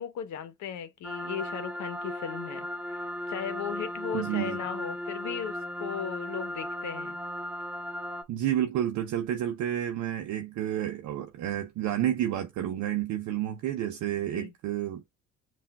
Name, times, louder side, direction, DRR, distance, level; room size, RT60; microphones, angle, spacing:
voice 1, 0.0-7.2 14.3-14.5, left 8 dB, 60° left, 0.9 m, -37 dB
sound 1, 1.0-8.2, left 1 dB, 5° right, 0.7 m, -36 dB
voice 2, 4.1-4.6 8.3-15.1, right 11 dB, 60° right, 0.7 m, -30 dB
5.6 x 2.5 x 2.3 m
supercardioid pair, 70°, 33 cm